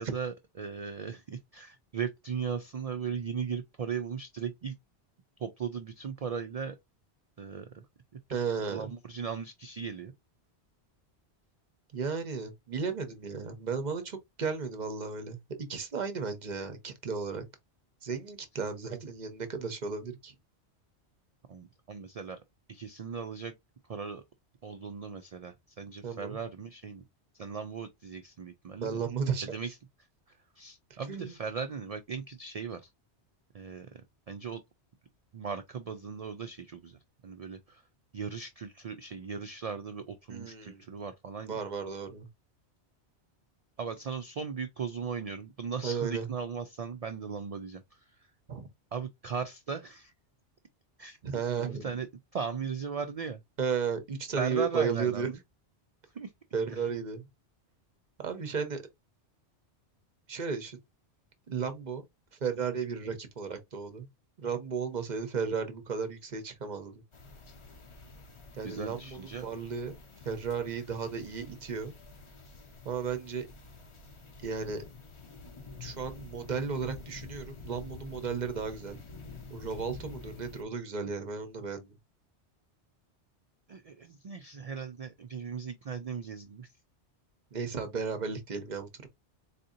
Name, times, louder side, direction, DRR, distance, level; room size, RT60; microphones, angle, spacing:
voice 1, 0.0-4.7 5.4-6.8 7.4-7.8 8.7-10.1 21.5-22.4 22.7-23.5 23.9-24.2 24.6-27.1 27.3-29.0 29.5-29.8 30.3-32.9 33.5-34.0 34.3-34.6 35.3-37.0 37.2-37.8 38.1-41.5 43.8-48.0 48.9-50.1 51.0-53.4 54.4-55.4 56.1-56.3 56.7-56.9 68.6-69.5 83.7-86.7, right 6 dB, 65° right, 0.3 m, -38 dB
voice 2, 8.3-8.9 11.9-17.4 18.0-20.3 26.0-26.4 28.8-29.5 31.1-31.3 40.3-40.8 41.4-42.3 45.8-46.3 48.5-48.7 51.2-51.9 53.6-55.4 56.5-57.3 58.2-58.8 60.3-60.8 61.5-62.0 62.3-64.1 64.4-67.0 68.5-70.0 70.2-71.9 72.8-73.5 74.4-74.8 75.8-79.0 79.5-82.0 87.5-89.1, right 5 dB, 45° right, 0.8 m, -34 dB
sound 1, 67.1-80.6, left 3 dB, 35° left, 0.6 m, -49 dB
4.2 x 2.7 x 2.5 m
omnidirectional pair, 1.2 m